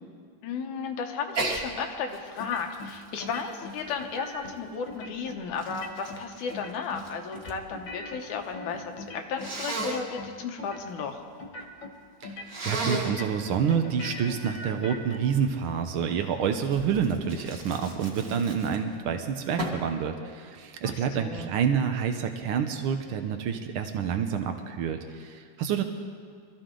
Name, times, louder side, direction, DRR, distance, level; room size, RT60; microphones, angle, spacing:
voice 1, 0.4-11.2 20.8-21.5, left 5 dB, 90° left, 4 dB, 2.6 m, -34 dB
Sneeze, 1.3-1.6 2.1-4.5 5.2-7.6 7.9-8.5 9.4-10.0 12.5-13.2 16.7-19.0 19.6-19.9, right 2 dB, 35° right, 1.9 m, -34 dB
sound 1, 2.4-2.9 3.2-4.5 4.9-5.4 5.7-6.2 6.5-7.1 7.3-9.5 9.8-10.3 10.6-11.1 11.4-11.9 12.2-12.8 13.0-15.2, left 2 dB, 55° left, 1.6 m, -40 dB
voice 2, 12.2-25.8, right 7 dB, 85° right, 6 dB, 1.1 m, -28 dB
23.5 x 13.5 x 3.8 m, 2.1 s
omnidirectional pair, 3.3 m